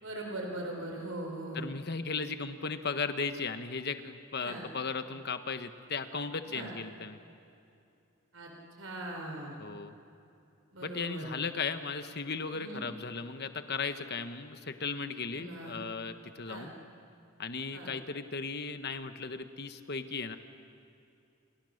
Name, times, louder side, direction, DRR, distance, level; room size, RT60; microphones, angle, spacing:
voice 1, 0.0-1.6 4.4-4.6 6.5-6.7 8.3-8.5 8.8-9.6 10.7-11.3 12.5-12.8 15.3-15.8 16.5-16.7 17.7-17.9, right 1 dB, 70° right, 1 dB, 4.4 m, -40 dB
voice 2, 1.5-7.2 9.6-9.9 10.8-16.7 17.4-20.4, left 4 dB, 50° left, 9 dB, 1.2 m, -36 dB
29.0 x 27.5 x 6.6 m, 2.6 s
head